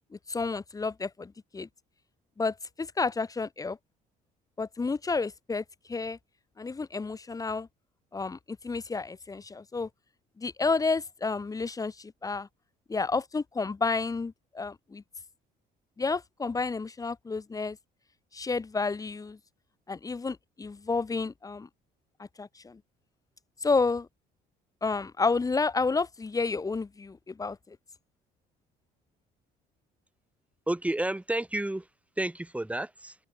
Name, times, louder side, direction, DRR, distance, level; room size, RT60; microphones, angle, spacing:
voice 1, 0.3-1.7 2.4-3.8 4.6-6.2 6.6-7.7 8.1-9.9 10.4-12.5 12.9-15.0 16.0-17.8 18.3-19.4 19.9-21.7 22.4-22.8 23.6-24.1 24.8-27.8, left 4 dB, 20° left, 1.3 m, -30 dB
voice 2, 30.7-31.9 32.2-33.2, right 1 dB, 10° right, 6.1 m, -31 dB
open air
cardioid pair, 110°, 17 cm